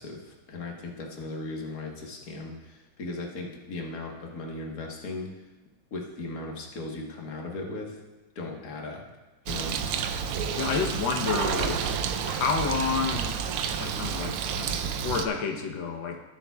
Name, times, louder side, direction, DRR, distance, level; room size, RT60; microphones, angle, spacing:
voice 1, 0.0-5.3 5.9-8.0 8.3-9.0 9.5-9.8, left 2 dB, 45° left, -1 dB, 1.7 m, -37 dB
Bird, 9.5-15.3, right 7 dB, 90° right, 1.5 m, -30 dB
voice 2, 10.6-13.4 13.8-16.2, left 5 dB, 65° left, 4 dB, 1.6 m, -30 dB
20.5 x 7.1 x 2.3 m, 1.1 s
omnidirectional pair, 2.4 m